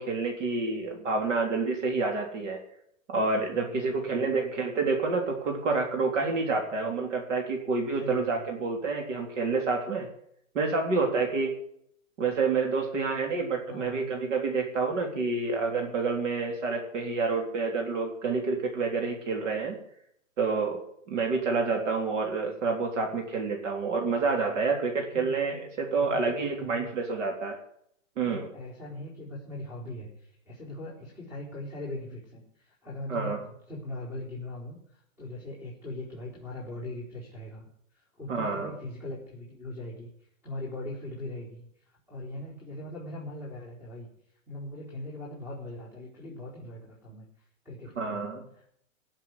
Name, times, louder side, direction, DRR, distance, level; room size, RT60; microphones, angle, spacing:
voice 1, 0.0-2.6 3.1-10.1 10.5-11.6 12.2-19.8 20.4-20.8 21.1-27.6 28.2-28.5 33.1-33.4 38.3-38.7 48.0-48.5, right 4 dB, 65° right, 2 dB, 3.7 m, -28 dB
voice 2, 3.5-4.3 8.0-8.5 13.6-14.1 25.1-25.3 26.0-26.9 28.2-33.4 33.7-37.7 38.2-40.1 40.4-44.1 44.5-47.3 47.6-48.2 48.5-48.7, left 1 dB, 5° right, -5 dB, 4.4 m, -40 dB
17.5 x 7.3 x 9.8 m, 0.71 s
hypercardioid pair, 155°, 39 cm